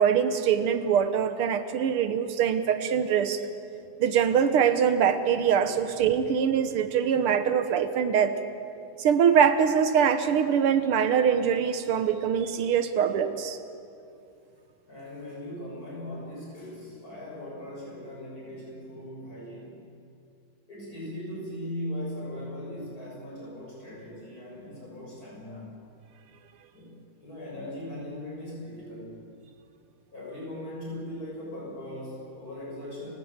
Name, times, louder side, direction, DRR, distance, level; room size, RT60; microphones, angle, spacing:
voice 1, 0.0-3.4 4.0-8.4 9.0-13.6, right 8 dB, 80° right, 10 dB, 1.9 m, -23 dB
voice 2, 14.9-19.8 20.7-25.8 26.7-29.2 30.1-33.1, left 1 dB, 40° left, -4 dB, 7.6 m, -39 dB
29.5 x 16.5 x 7.4 m, 2.6 s
omnidirectional pair, 2.4 m